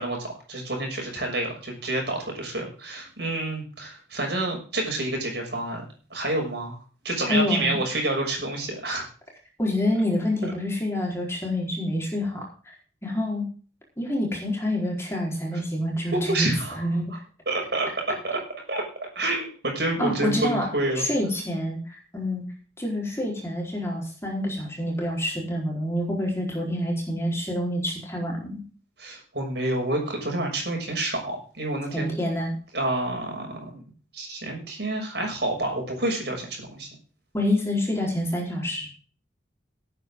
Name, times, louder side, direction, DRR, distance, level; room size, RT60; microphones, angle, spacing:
voice 1, 0.0-5.8 6.1-6.8 7.0-9.0 10.4-10.5 16.1-16.8 17.4-17.9 18.2-18.4 18.7-18.8 19.1-21.1 29.0-32.1 32.7-33.8 34.1-36.9, right 2 dB, 60° right, 1 dB, 6.7 m, -28 dB
voice 2, 7.3-7.8 9.6-12.4 13.0-13.5 14.0-17.1 20.0-20.7 20.9-22.4 22.8-28.6 31.9-32.5 37.3-38.9, left 1 dB, 15° left, -2 dB, 4.4 m, -27 dB
17.5 x 9.5 x 3.8 m, 0.39 s
head